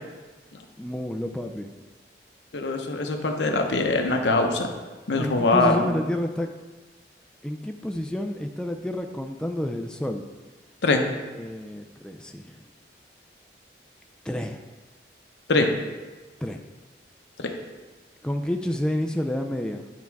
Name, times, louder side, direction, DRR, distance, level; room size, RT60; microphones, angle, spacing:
voice 1, 0.8-1.7 5.2-6.5 7.4-10.2 11.1-12.7 14.2-14.6 16.4-16.6 18.2-19.9, left 1 dB, 5° left, 4 dB, 0.3 m, -29 dB
voice 2, 2.5-4.7 5.1-5.9 10.8-11.0 15.5-15.7 17.4-17.5, left 3 dB, 85° left, 4 dB, 0.8 m, -22 dB
10.5 x 3.5 x 4.6 m, 1.3 s
head